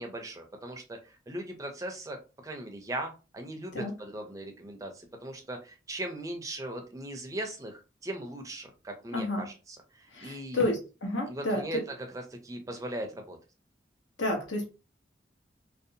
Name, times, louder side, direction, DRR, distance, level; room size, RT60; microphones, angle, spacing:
voice 1, 0.0-2.2 2.4-10.6 11.3-11.8 12.1-13.4, right 1 dB, 20° right, 3 dB, 0.4 m, -39 dB
voice 2, 9.1-9.4 10.1-11.8 14.2-14.7, left 1 dB, 90° left, 0 dB, 1.0 m, -30 dB
2.6 x 2.0 x 2.7 m, 0.32 s
head